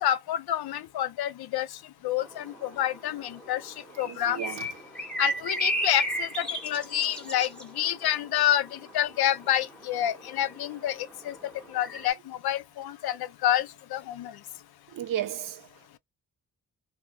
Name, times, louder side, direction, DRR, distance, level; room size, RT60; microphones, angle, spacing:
voice 1, 0.0-1.7 2.0-4.4 5.2-11.3 11.7-14.3, left 11 dB, 85° left, 0.5 m, -28 dB
sound 1, 2.2-12.1, equal, 5° left, 0.7 m, -36 dB
voice 2, 4.1-4.7 14.9-15.6, right 11 dB, 60° right, 0.5 m, -33 dB
2.3 x 2.1 x 2.9 m
wide cardioid pair, 130°, 37 cm